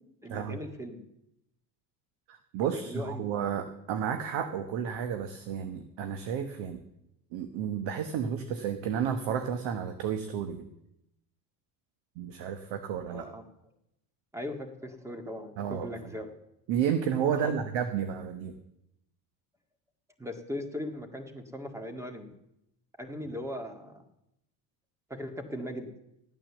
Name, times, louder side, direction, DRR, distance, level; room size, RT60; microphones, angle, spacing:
voice 1, 0.2-1.0 2.7-3.3 13.1-13.4 14.3-16.3 17.2-17.5 20.2-22.3 23.0-24.0 25.1-25.9, left 1 dB, 5° right, 6 dB, 1.9 m, -39 dB
voice 2, 2.3-6.8 7.3-10.7 12.2-13.3 15.6-15.9 16.7-18.5, right 8 dB, 75° right, 8 dB, 1.2 m, -32 dB
13.5 x 9.2 x 7.2 m, 0.84 s
cardioid pair, 105°, 44 cm